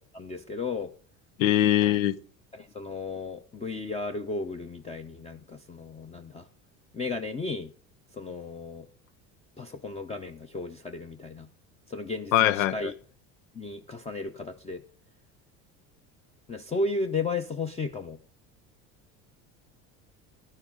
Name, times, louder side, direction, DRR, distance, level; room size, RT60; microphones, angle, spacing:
voice 1, 0.1-0.9 2.5-6.4 6.9-7.7 8.1-8.9 9.6-11.5 11.9-12.9 13.5-14.8 16.5-18.2, left 3 dB, 15° left, 0.7 m, -34 dB
voice 2, 1.4-2.2 12.3-12.9, left 13 dB, 85° left, 0.7 m, -22 dB
12.0 x 9.9 x 3.8 m
supercardioid pair, 90°, 38 cm